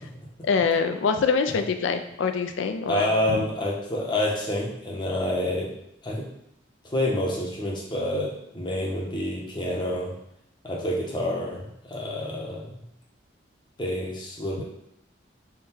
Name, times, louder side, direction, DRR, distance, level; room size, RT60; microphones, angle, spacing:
voice 1, 0.4-3.1, left 5 dB, 75° left, 7 dB, 0.3 m, -24 dB
voice 2, 2.9-5.7 6.0-6.2 6.8-10.1 10.6-11.6 11.9-12.6 13.8-14.6, left 1 dB, 25° left, -2 dB, 0.7 m, -28 dB
3.6 x 2.2 x 4.2 m, 0.78 s
head